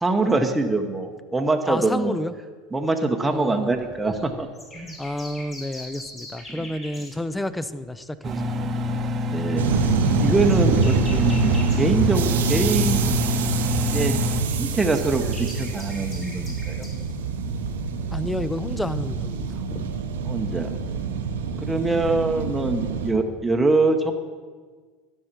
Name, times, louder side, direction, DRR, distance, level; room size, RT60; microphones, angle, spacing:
voice 1, 0.0-2.1 2.7-4.5 4.7-5.0 6.5-6.6 9.2-9.7 10.2-13.1 13.9-14.2 14.6-16.9 20.2-20.7 21.6-24.1, right 3 dB, 10° right, 3 dB, 0.9 m, -24 dB
voice 2, 1.7-2.3 3.3-3.8 5.0-8.5 18.1-19.9, left 1 dB, 10° left, 15 dB, 0.5 m, -30 dB
sound 1, 3.5-7.9 8.2-8.4 8.9-13.2 13.5-18.9, left 1 dB, 30° left, 2.7 m, -44 dB
Engine, 8.2-14.4, left 2 dB, 40° right, 0.8 m, -26 dB
sound 2, 9.6-23.1, right 5 dB, 80° right, 0.8 m, -25 dB
12.5 x 5.5 x 6.1 m, 1.5 s
hypercardioid pair, 85°, 0 cm